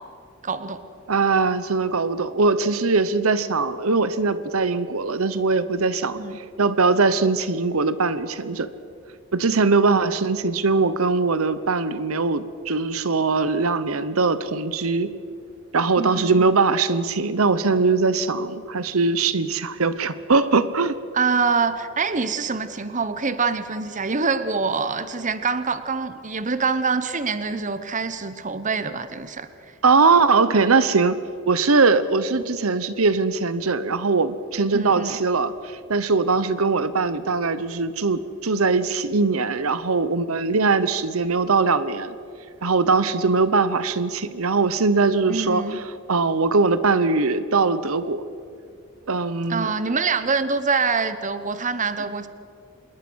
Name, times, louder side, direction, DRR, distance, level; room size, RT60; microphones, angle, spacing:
voice 1, 0.4-0.8 6.2-6.4 16.0-16.5 21.1-29.5 34.7-35.2 45.3-45.8 49.5-52.3, right 4 dB, 35° right, 12 dB, 1.0 m, -25 dB
voice 2, 1.1-6.2 6.6-8.7 9.3-15.1 15.7-21.0 29.8-31.2 31.5-42.1 42.6-45.6 46.1-48.2 49.1-49.7, right 4 dB, 80° right, 14 dB, 1.0 m, -21 dB
26.5 x 21.0 x 6.4 m, 2.3 s
head